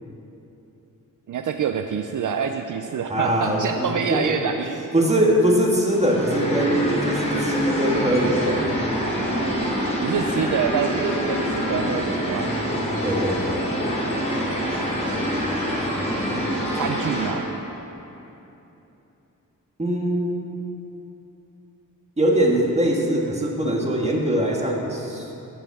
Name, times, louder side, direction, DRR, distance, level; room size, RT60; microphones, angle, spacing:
voice 1, 1.3-4.9 10.0-12.5 16.5-17.5, right 7 dB, 65° right, 6 dB, 0.5 m, -27 dB
voice 2, 3.1-4.3 4.9-8.7 13.0-13.7 19.8-20.4 22.2-25.3, right 1 dB, 20° right, -1 dB, 1.7 m, -22 dB
sound 1, 5.9-17.3, equal, 20° left, 2.9 m, -25 dB
15.0 x 5.6 x 7.1 m, 3.0 s
wide cardioid pair, 110°, 34 cm